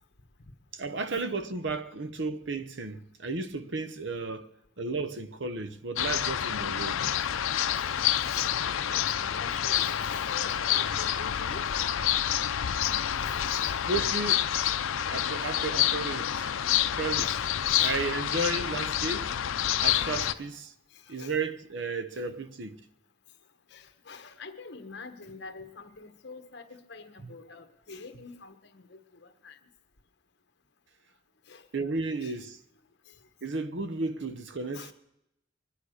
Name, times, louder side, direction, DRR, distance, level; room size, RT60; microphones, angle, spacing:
voice 1, 0.7-4.5 4.8-7.1 12.8-13.0 13.8-14.5 15.1-16.5 17.0-17.4 17.8-19.3 19.8-20.7 21.1-22.8 31.7-32.6 33.4-34.9, right 3 dB, 60° right, 0.9 m, -33 dB
sound 1, 6.0-20.3, left 10 dB, 90° left, 0.6 m, -28 dB
voice 2, 8.9-11.7 12.8-13.8 17.2-18.0 20.3-20.5 20.9-21.4 22.1-22.3 23.7-29.6 31.5-32.4 33.1-33.2 34.7-34.9, left 4 dB, 55° left, 1.3 m, -46 dB
22.5 x 9.8 x 6.5 m
head